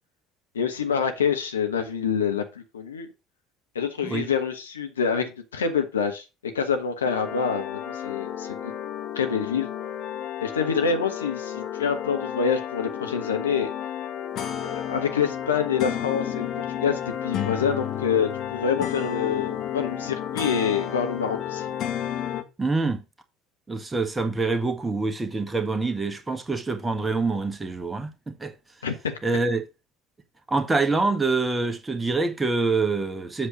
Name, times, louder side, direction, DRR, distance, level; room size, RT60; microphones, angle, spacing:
voice 1, 0.5-3.1 3.7-6.2 6.5-8.7 9.1-9.7 10.4-13.7 14.6-21.7 28.8-29.2, left 6 dB, 75° left, 1.1 m, -26 dB
sound 1, 7.0-22.4, left 10 dB, 45° left, 1.3 m, -32 dB
voice 2, 22.6-23.0 23.7-28.5 29.2-29.6 30.5-33.5, right 3 dB, 15° right, 1.5 m, -25 dB
7.6 x 6.5 x 3.9 m
figure-of-eight pair, 65°, 0 cm